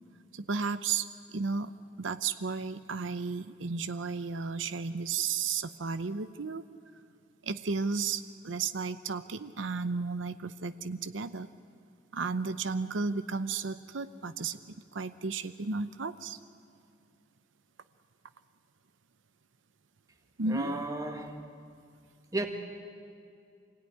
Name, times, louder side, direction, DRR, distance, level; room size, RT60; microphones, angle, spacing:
voice 1, 0.3-1.7 2.0-6.6 7.4-11.5 12.1-14.6 14.9-16.4 20.4-20.7, right 4 dB, 90° right, 0.7 m, -33 dB
voice 2, 20.4-21.4 22.3-22.5, right 2 dB, 20° right, 1.7 m, -33 dB
25.0 x 17.0 x 9.8 m
head